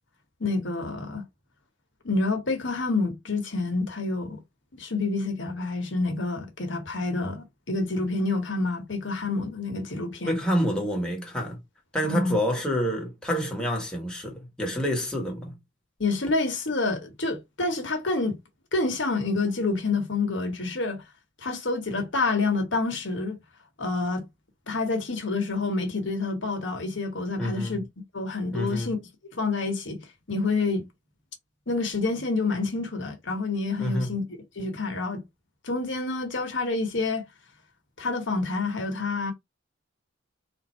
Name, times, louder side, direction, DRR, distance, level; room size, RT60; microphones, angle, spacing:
voice 1, 0.4-1.2 2.0-4.4 4.7-10.4 12.0-12.4 16.0-18.4 18.7-21.0 21.4-23.4 23.8-24.3 24.7-27.8 28.1-29.0 29.3-30.0 30.3-30.9 31.7-34.2 34.6-35.2 35.6-37.2 38.0-39.3, left 3 dB, 65° left, 1.3 m, -28 dB
voice 2, 10.2-11.6 11.9-15.5 27.4-27.8 28.5-28.9 33.8-34.1, equal, 5° left, 1.4 m, -28 dB
3.8 x 2.7 x 4.3 m
head